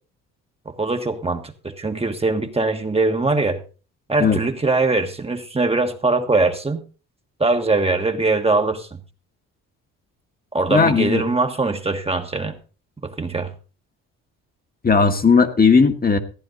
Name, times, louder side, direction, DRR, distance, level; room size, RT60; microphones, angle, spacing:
voice 1, 0.6-3.6 4.1-6.8 7.4-8.9 10.5-12.6 13.0-13.5, right 3 dB, 15° right, 5 dB, 1.4 m, -21 dB
voice 2, 10.7-11.2 14.8-16.2, left 5 dB, 25° left, 6 dB, 1.5 m, -16 dB
15.0 x 9.9 x 3.9 m, 0.35 s
supercardioid pair, 75°, 34 cm